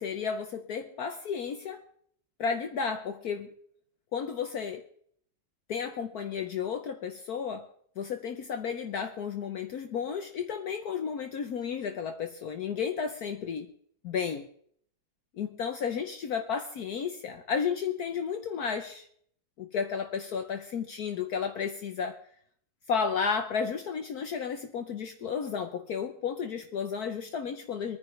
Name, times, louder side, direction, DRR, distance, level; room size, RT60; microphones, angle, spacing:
voice 1, 0.0-1.8 2.4-3.5 4.1-4.8 5.7-7.7 8.0-13.7 14.0-14.5 15.3-19.1 19.6-22.2 22.9-28.0, left 6 dB, 65° left, 5 dB, 1.3 m, -33 dB
25.0 x 9.7 x 3.3 m, 0.62 s
omnidirectional pair, 1.9 m